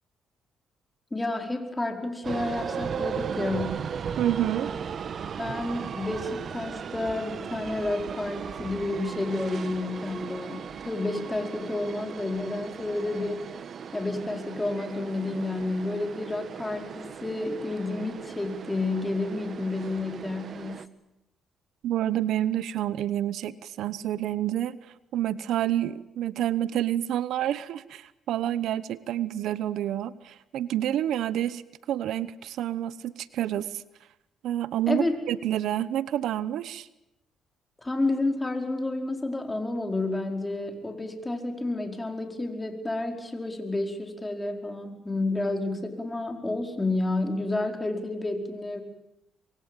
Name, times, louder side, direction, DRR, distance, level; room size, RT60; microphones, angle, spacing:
voice 1, 1.1-3.9 5.4-13.4 13.9-20.8 34.9-35.2 37.8-48.8, left 2 dB, 15° left, 5 dB, 4.8 m, -30 dB
sound 1, 2.2-20.9, right 7 dB, 55° right, 1.3 m, -37 dB
voice 2, 4.2-4.7 21.8-24.8 25.1-31.6 31.9-33.8 34.4-36.9, right 12 dB, 80° right, 17 dB, 1.0 m, -28 dB
25.5 x 23.0 x 9.1 m, 0.89 s
cardioid pair, 90°, 0 cm